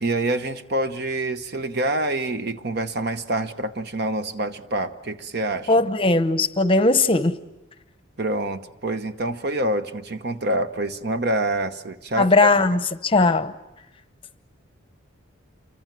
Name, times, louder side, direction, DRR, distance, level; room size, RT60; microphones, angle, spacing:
voice 1, 0.0-5.7 8.2-12.5, right 1 dB, 50° right, 1.0 m, -26 dB
voice 2, 5.7-7.4 12.2-13.5, left 3 dB, 25° left, 0.8 m, -19 dB
28.0 x 24.0 x 7.6 m
head